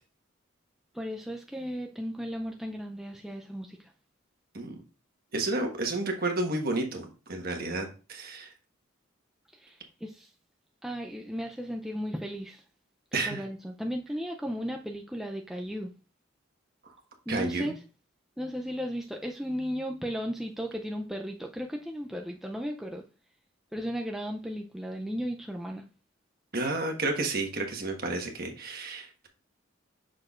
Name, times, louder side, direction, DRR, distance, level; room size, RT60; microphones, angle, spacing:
voice 1, 0.9-3.9 9.6-10.3 10.8-12.6 13.1-15.9 17.3-17.7 18.4-23.0 23.7-25.8, equal, ahead, 0.4 m, -35 dB
voice 2, 5.3-8.5 13.1-13.4 17.3-17.7 26.5-29.3, right 2 dB, 50° right, 1.4 m, -31 dB
6.5 x 6.2 x 2.5 m
head